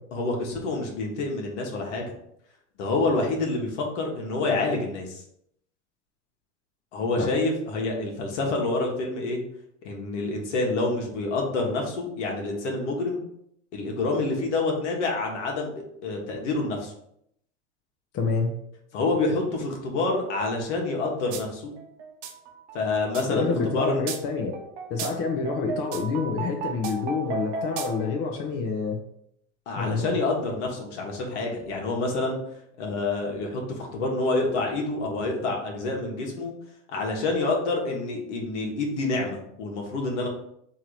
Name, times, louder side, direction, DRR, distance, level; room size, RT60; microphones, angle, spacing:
voice 1, 0.1-2.0 2.8-5.2 6.9-9.4 9.8-13.2 13.7-16.9 18.9-21.7 22.7-24.0 29.7-32.4 32.8-36.5 36.9-40.3, left 2 dB, 70° left, 0 dB, 1.4 m, -27 dB
voice 2, 18.1-18.5 23.3-24.5 24.9-29.0 29.7-30.2, left 4 dB, 40° left, 2 dB, 0.8 m, -27 dB
sound 1, 21.3-21.4 21.8-28.2, right 5 dB, 65° right, 0.8 m, -35 dB
3.7 x 3.0 x 4.6 m, 0.74 s
hypercardioid pair, 95°, 36 cm